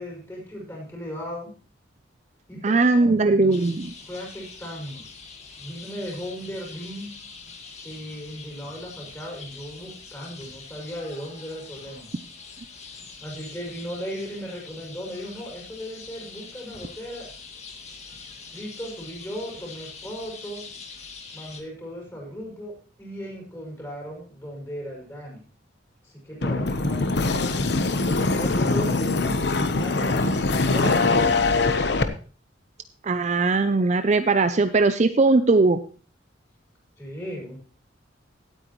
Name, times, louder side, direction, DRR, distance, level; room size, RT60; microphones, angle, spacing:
voice 1, 0.0-1.5 2.5-3.5 4.1-5.0 5.6-7.1 7.8-12.1 13.2-17.3 18.5-20.7 21.3-25.4 26.0-27.5 28.0-31.7 37.0-37.6, equal, 15° left, -2 dB, 6.2 m, -36 dB
voice 2, 2.6-3.9 33.0-35.8, right 3 dB, 35° right, 10 dB, 0.5 m, -19 dB
sound 1, 3.5-21.6, left 5 dB, 35° left, 1.9 m, -44 dB
sound 2, 26.4-32.0, left 3 dB, 60° left, 1.0 m, -22 dB
17.0 x 9.0 x 3.1 m, 0.39 s
head